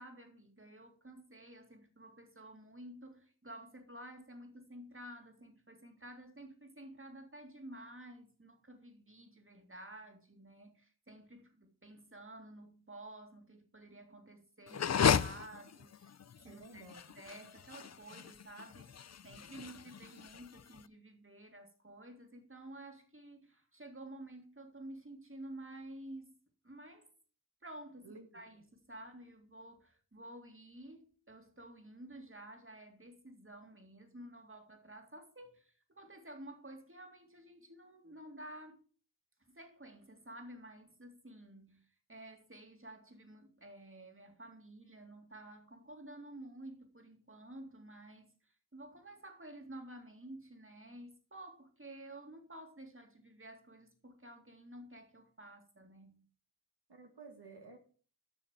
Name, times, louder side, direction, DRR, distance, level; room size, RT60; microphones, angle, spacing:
voice 1, 0.0-16.1 16.4-16.9 17.1-26.4 26.6-27.1 27.6-38.8 39.5-56.3, right 1 dB, 30° right, 2.3 m, -52 dB
sound 1, 14.7-20.8, left 7 dB, 45° left, 0.4 m, -34 dB
voice 2, 16.4-17.1 28.0-28.4 56.9-57.8, right 3 dB, 85° right, 2.4 m, -53 dB
7.3 x 6.5 x 7.3 m
wide cardioid pair, 55°, 39 cm